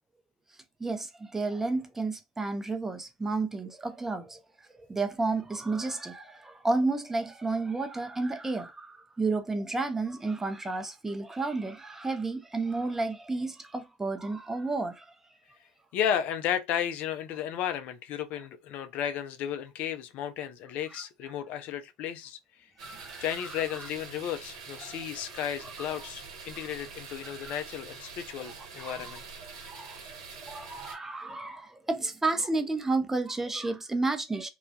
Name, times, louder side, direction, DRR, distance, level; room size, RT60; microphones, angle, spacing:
voice 1, 0.8-4.4 4.9-15.1 20.9-21.0 22.8-23.9 24.8-25.0 25.6-25.7 27.2-27.6 28.8-29.2 29.5-34.5, right 3 dB, 10° right, 0.5 m, -32 dB
voice 2, 15.9-22.4 23.2-29.2, left 9 dB, 55° left, 0.4 m, -33 dB
sound 1, 22.8-31.0, right 5 dB, 70° right, 1.1 m, -45 dB
2.3 x 2.0 x 2.7 m
hypercardioid pair, 80°, 3 cm